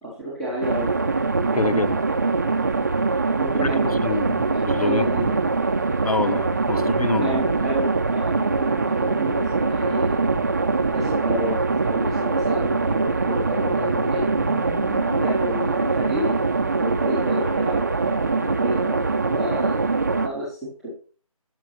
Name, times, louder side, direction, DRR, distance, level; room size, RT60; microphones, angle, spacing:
voice 1, 0.0-0.9 3.3-5.3 6.7-6.8 7.2-10.2 10.9-14.2 15.2-16.3 16.8-19.8 20.2-20.9, right 1 dB, ahead, 0.9 m, -30 dB
sound 1, 0.6-20.3, right 3 dB, 30° right, 0.8 m, -23 dB
voice 2, 1.5-2.0 4.0-5.3 6.0-7.4, left 4 dB, 80° left, 0.7 m, -26 dB
sound 2, 9.3-15.3, left 3 dB, 60° left, 1.0 m, -39 dB
12.5 x 6.1 x 4.1 m
figure-of-eight pair, 170°, 19 cm